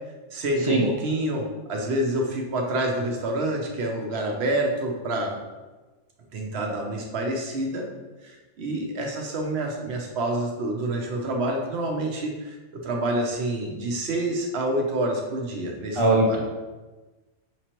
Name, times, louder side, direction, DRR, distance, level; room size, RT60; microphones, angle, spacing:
voice 1, 0.3-5.4 6.3-7.9 8.2-16.4, right 1 dB, 60° right, 1 dB, 0.9 m, -28 dB
voice 2, 16.0-16.4, right 2 dB, 40° right, -2 dB, 0.4 m, -20 dB
5.7 x 3.1 x 2.9 m, 1.2 s
omnidirectional pair, 1.4 m